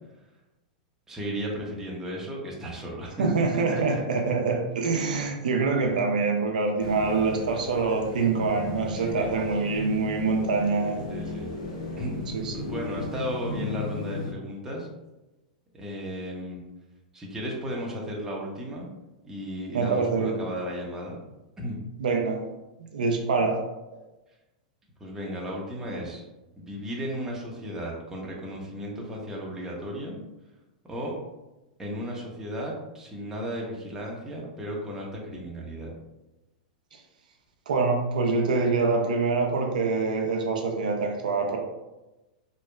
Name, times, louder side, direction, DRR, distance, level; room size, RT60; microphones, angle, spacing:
voice 1, 1.1-4.0 8.9-9.3 11.1-11.5 12.0-12.1 12.5-14.9 15.7-16.6 17.1-18.9 19.2-21.2 21.6-21.8 25.0-26.2 26.6-30.2 30.8-31.1 31.8-35.9, equal, 10° right, -3 dB, 0.7 m, -34 dB
voice 2, 3.2-11.1 12.3-12.7 19.7-20.4 22.0-22.4 22.9-23.6 37.7-41.6, right 4 dB, 80° right, 2 dB, 0.4 m, -25 dB
sound 1, 6.8-14.3, left 2 dB, 65° left, 0.8 m, -36 dB
2.7 x 2.2 x 2.2 m, 1.0 s
hypercardioid pair, 115°, 4 cm